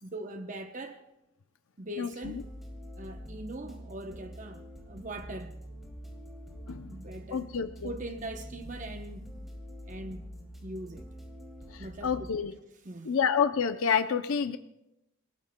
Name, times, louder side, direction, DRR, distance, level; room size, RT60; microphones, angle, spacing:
voice 1, 0.0-1.0 1.8-2.5 2.9-5.6 6.9-7.5 7.8-9.4 9.9-10.3 10.6-11.1 11.8-12.3 12.8-13.1, right 1 dB, 40° right, 0.8 m, -41 dB
voice 2, 2.0-2.4 6.7-7.0 7.3-7.9 11.7-12.5 13.0-14.6, left 6 dB, 90° left, 0.6 m, -29 dB
sound 1, 2.2-12.3, equal, ahead, 2.5 m, -45 dB
28.5 x 18.0 x 2.2 m
head